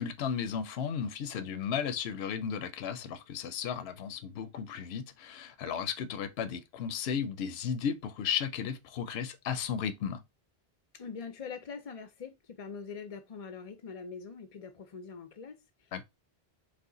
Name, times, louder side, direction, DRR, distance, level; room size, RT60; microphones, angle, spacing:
voice 1, 0.0-10.2 15.9-16.0, left 7 dB, 80° left, 0.8 m, -34 dB
voice 2, 10.9-16.0, left 5 dB, 45° left, 0.5 m, -43 dB
4.9 x 2.4 x 3.8 m
omnidirectional pair, 1.1 m